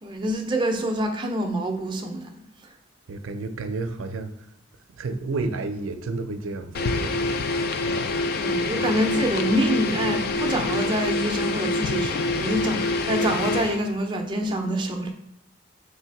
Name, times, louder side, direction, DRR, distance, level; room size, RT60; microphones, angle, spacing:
voice 1, 0.0-2.3 8.4-15.1, right 1 dB, 25° right, 0.4 m, -26 dB
voice 2, 3.1-4.5 4.9-7.6, right 3 dB, 80° right, 0.5 m, -31 dB
sound 1, 6.7-13.8, left 2 dB, 50° left, 0.3 m, -26 dB
3.3 x 2.8 x 4.5 m
head